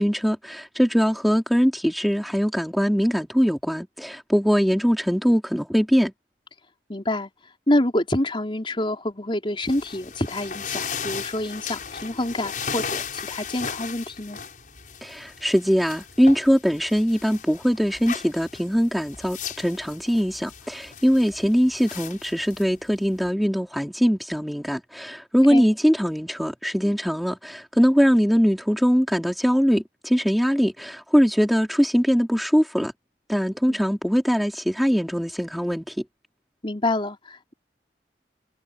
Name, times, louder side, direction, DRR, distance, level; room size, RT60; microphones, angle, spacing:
voice 1, 0.0-6.1 15.0-32.9 33.3-36.0, equal, ahead, 2.6 m, -21 dB
voice 2, 6.9-7.3 7.7-14.4 25.5-25.6 33.7-33.8 36.6-37.5, left 1 dB, 30° left, 4.2 m, -27 dB
sound 1, 9.6-23.3, left 6 dB, 50° left, 6.7 m, -36 dB
head